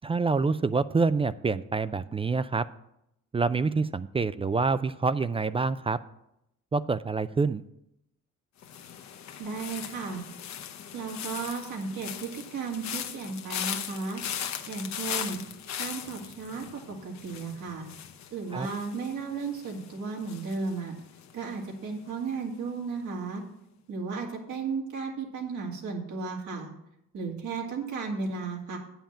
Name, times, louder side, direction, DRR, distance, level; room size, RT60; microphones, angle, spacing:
voice 1, 0.0-2.6 3.3-6.0 6.7-7.6 18.5-18.7, right 4 dB, 20° right, 15 dB, 0.3 m, -26 dB
sound 1, 8.6-21.7 21.9-22.4, left 9 dB, 65° left, 0.9 m, -39 dB
voice 2, 9.4-10.2 10.9-14.2 14.7-15.4 15.8-16.6 17.0-17.9 18.3-20.9 21.3-23.4 23.9-26.7 27.1-28.8, right 4 dB, 80° right, -1 dB, 2.4 m, -34 dB
8.7 x 5.7 x 7.4 m, 0.81 s
cardioid pair, 90°, 30 cm